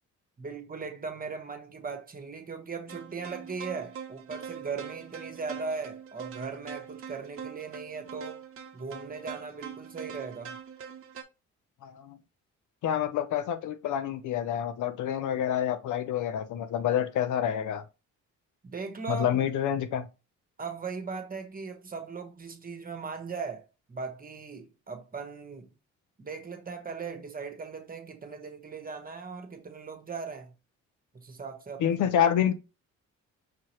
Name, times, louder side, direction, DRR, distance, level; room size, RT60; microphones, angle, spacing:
voice 1, 0.4-8.4 8.7-10.6 18.6-19.4 20.6-25.7 26.2-30.5 31.1-32.0, right 5 dB, 30° right, 1.3 m, -38 dB
sound 1, 2.9-11.2, right 7 dB, 45° right, 0.8 m, -43 dB
voice 2, 11.8-12.2 12.8-17.8 19.1-20.1 31.8-32.5, left 9 dB, 75° left, 0.7 m, -28 dB
6.0 x 2.8 x 3.1 m
cardioid pair, 90°, 30 cm